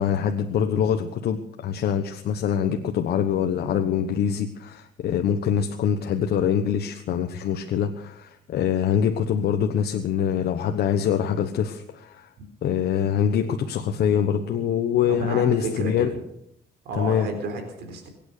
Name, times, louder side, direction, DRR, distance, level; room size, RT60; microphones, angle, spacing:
voice 1, 0.0-12.3 12.6-16.1 17.0-17.3, left 8 dB, 75° left, 5 dB, 1.2 m, -24 dB
voice 2, 15.1-16.2 16.8-18.1, right 3 dB, 85° right, 5 dB, 3.8 m, -31 dB
23.0 x 9.1 x 6.7 m, 0.75 s
cardioid pair, 100°, 17 cm